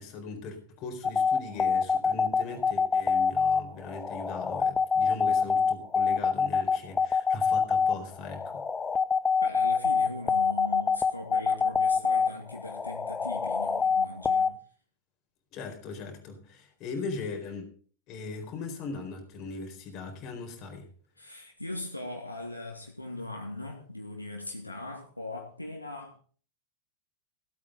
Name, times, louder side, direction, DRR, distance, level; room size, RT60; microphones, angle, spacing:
voice 1, 0.0-8.6 15.5-17.7 18.1-20.9, left 4 dB, 40° left, 3 dB, 4.3 m, -39 dB
sound 1, 1.0-14.5, left 5 dB, 15° left, 0.7 m, -25 dB
voice 2, 9.4-14.5 21.2-26.2, left 2 dB, 85° left, 0 dB, 2.3 m, -39 dB
16.0 x 8.9 x 5.1 m, 0.43 s
figure-of-eight pair, 90°, 0 cm